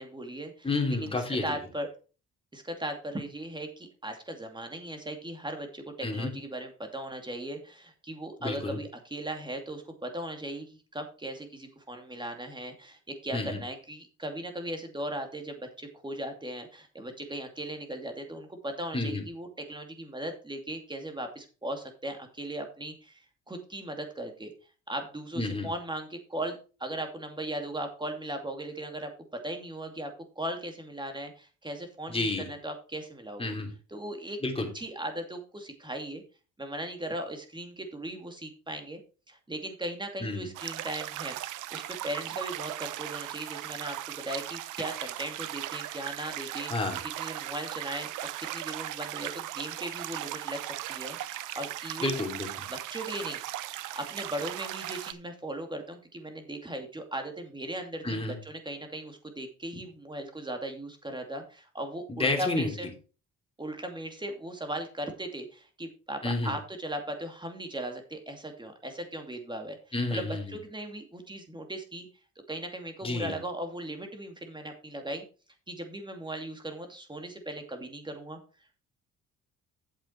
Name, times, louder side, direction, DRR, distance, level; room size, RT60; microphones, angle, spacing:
voice 1, 0.0-0.7 1.0-1.9 2.5-24.5 24.9-29.1 29.4-30.1 30.4-33.5 33.9-34.4 34.7-36.2 36.6-39.0 39.3-41.4 41.7-46.7 47.2-52.1 52.7-53.6 54.0-62.9 63.6-69.8 70.1-72.1 72.5-75.2 75.7-78.4, right 1 dB, 15° right, 5 dB, 2.5 m, -38 dB
voice 2, 0.6-1.6 6.0-6.3 8.4-8.8 13.3-13.6 18.9-19.2 25.3-25.7 32.1-32.5 33.4-33.7 34.4-34.7 40.2-40.5 46.7-47.0 52.0-52.7 58.0-58.4 62.1-62.7 66.2-66.5 69.9-70.6 73.0-73.4, left 2 dB, 20° left, 2 dB, 3.1 m, -30 dB
sound 1, 40.5-55.1, right 14 dB, 90° right, 0.7 m, -38 dB
9.1 x 7.3 x 4.5 m, 0.35 s
cardioid pair, 90°, 30 cm